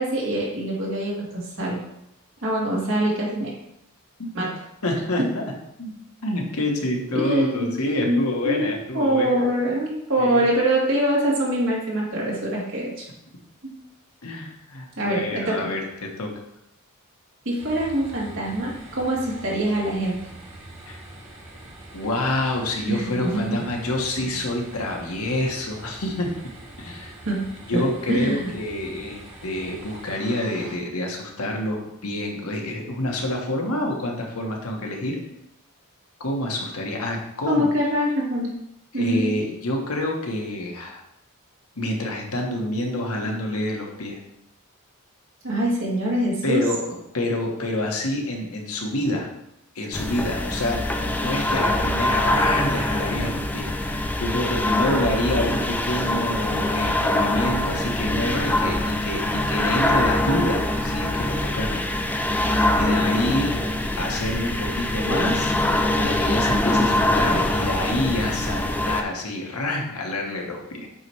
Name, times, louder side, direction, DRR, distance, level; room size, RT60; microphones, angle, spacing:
voice 1, 0.0-1.8 2.4-3.5 4.3-4.5 7.1-7.7 8.0-13.1 15.0-15.7 17.4-20.2 22.8-23.6 24.2-24.3 27.2-27.5 27.7-27.8 28.1-28.5 37.5-38.5 38.9-39.3 45.4-46.7, right 1 dB, 60° right, -4 dB, 2.4 m, -24 dB
voice 2, 4.8-5.4 5.8-5.9 6.2-9.3 10.2-10.5 14.2-16.3 20.8-21.0 21.9-26.3 26.8-27.1 27.7-35.2 36.2-37.7 38.9-41.0 41.8-44.2 46.4-49.3 49.7-61.8 62.7-63.6 64.0-65.5 66.0-70.9, left 1 dB, 75° left, 0 dB, 1.4 m, -27 dB
sound 1, 17.6-30.8, right 1 dB, 35° right, 1.6 m, -43 dB
sound 2, 49.9-69.0, left 1 dB, 10° left, 0.5 m, -23 dB
8.5 x 3.1 x 4.7 m, 0.80 s
head